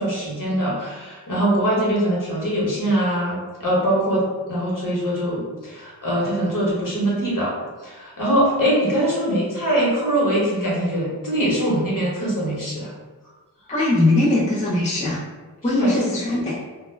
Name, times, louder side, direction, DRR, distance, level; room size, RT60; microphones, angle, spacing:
voice 1, 0.0-7.5 7.8-12.9 15.7-15.9, right 1 dB, 50° left, -5 dB, 1.0 m, -22 dB
voice 2, 13.7-15.2 15.6-16.6, left 2 dB, 20° left, -6 dB, 0.4 m, -20 dB
2.2 x 2.1 x 3.2 m, 1.3 s
wide cardioid pair, 80°, 42 cm